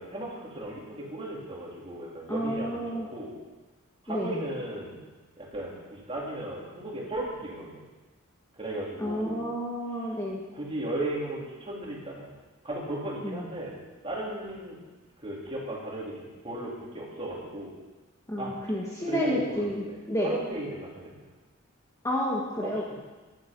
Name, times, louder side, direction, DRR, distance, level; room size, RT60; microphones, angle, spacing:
voice 1, 0.0-3.3 4.0-5.0 5.4-7.8 8.5-9.4 10.5-12.3 12.6-14.8 15.2-17.7 18.4-18.5 19.1-21.2 22.6-22.9, right 1 dB, 25° right, -4 dB, 4.1 m, -36 dB
voice 2, 2.3-3.1 4.1-4.4 9.0-10.4 13.2-13.5 18.3-20.3 22.0-22.9, equal, 15° left, -4 dB, 1.9 m, -30 dB
15.0 x 11.5 x 5.6 m, 1.2 s
head